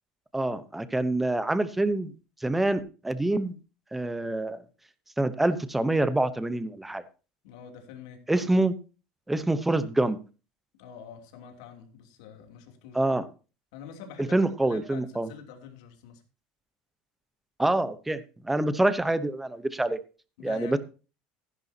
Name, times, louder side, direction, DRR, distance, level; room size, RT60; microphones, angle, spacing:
voice 1, 0.3-2.1 2.4-3.5 3.9-4.6 5.2-7.0 8.3-8.7 9.3-10.2 12.9-13.3 14.3-15.3 17.6-18.2 18.4-20.0 20.4-20.8, right 2 dB, 5° right, 13 dB, 0.8 m, -26 dB
voice 2, 7.4-8.2 10.8-13.2 13.7-16.2 20.4-20.8, left 7 dB, 90° left, 4 dB, 3.0 m, -46 dB
15.0 x 11.0 x 2.8 m, 0.33 s
cardioid pair, 160°, 3 cm